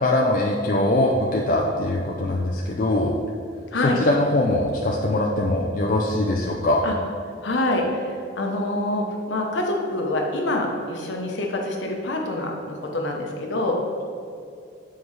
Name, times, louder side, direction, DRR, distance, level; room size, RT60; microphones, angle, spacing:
voice 1, 0.0-3.2 3.7-6.9, left 1 dB, 45° left, -2 dB, 0.4 m, -22 dB
voice 2, 7.4-13.8, left 1 dB, 65° left, 1 dB, 0.8 m, -26 dB
7.3 x 4.6 x 3.2 m, 2.4 s
head